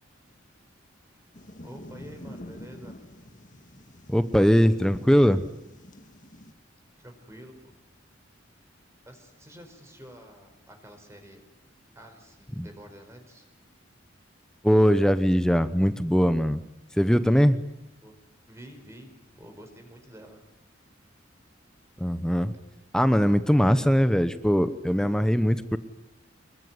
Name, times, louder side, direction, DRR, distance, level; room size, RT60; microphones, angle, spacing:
sound 1, 1.3-6.5, left 1 dB, 40° left, 1.7 m, -47 dB
voice 1, 1.6-2.9 7.0-7.7 9.1-11.4 11.9-13.4 18.0-18.2 18.5-20.4, equal, 15° right, 4 dB, 4.5 m, -48 dB
voice 2, 4.1-5.4 12.6-12.7 14.6-16.6 17.0-17.6 22.0-22.5 22.9-25.8, equal, 5° left, 12 dB, 0.9 m, -21 dB
25.5 x 22.5 x 9.6 m, 0.90 s
head